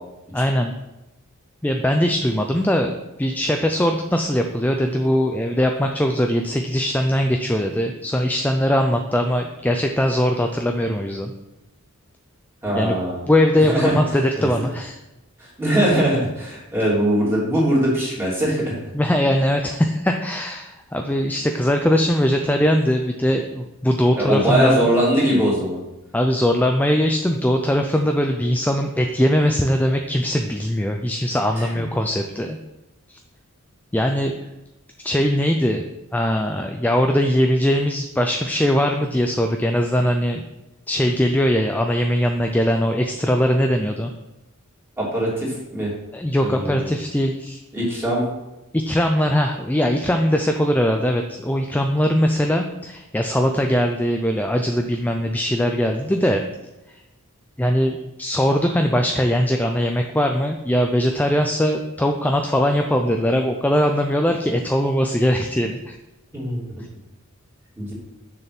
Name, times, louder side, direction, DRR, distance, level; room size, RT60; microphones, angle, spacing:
voice 1, 0.3-0.7 1.6-11.3 12.7-13.0 13.3-15.0 18.9-24.9 26.1-32.6 33.9-34.4 35.0-40.4 40.9-44.1 46.1-47.6 48.7-56.4 57.6-66.0, equal, 10° left, 4 dB, 0.4 m, -21 dB
voice 2, 12.6-13.2 13.6-14.0 14.4-14.6 15.4-18.8 24.1-25.8 31.6-31.7 45.0-45.9 46.4-46.9 47.7-48.3 66.3-66.6 67.8-67.9, right 1 dB, 10° right, -6 dB, 3.2 m, -21 dB
6.9 x 6.5 x 6.0 m, 0.99 s
head